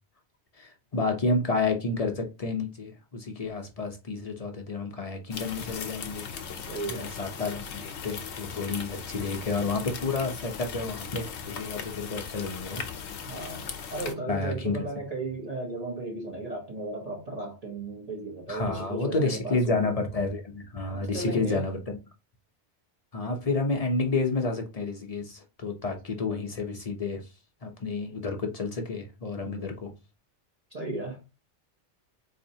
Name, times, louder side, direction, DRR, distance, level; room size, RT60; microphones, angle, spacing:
voice 1, 0.6-6.3 6.9-12.8 14.3-14.9 18.5-22.0 23.1-27.2 27.6-29.9, left 3 dB, 40° left, 0.6 m, -30 dB
sound 1, 5.3-14.1, left 7 dB, 75° left, 0.9 m, -38 dB
voice 2, 6.7-7.1 13.2-19.9 20.9-21.7 29.4-29.8 30.7-31.2, right 2 dB, 35° right, 0.9 m, -35 dB
4.1 x 2.8 x 2.7 m
omnidirectional pair, 1.2 m